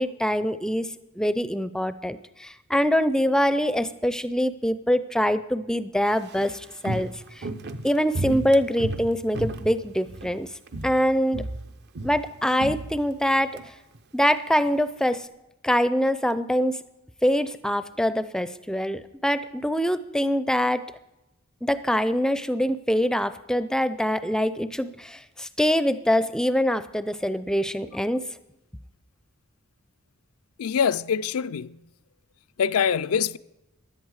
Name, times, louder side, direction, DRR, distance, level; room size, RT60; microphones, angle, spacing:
voice 1, 0.0-7.5 7.8-10.5 10.8-11.4 12.0-13.6 14.1-15.3 15.6-16.8 17.2-20.9 21.6-28.3, equal, 5° left, 0.4 m, -24 dB
Walk footsteps, 6.1-10.4 10.7-11.1 11.3-13.7 13.9-14.0, right 2 dB, 50° right, 0.7 m, -33 dB
voice 2, 30.6-31.8 32.6-33.4, left 7 dB, 80° left, 0.4 m, -24 dB
16.0 x 11.0 x 4.8 m
head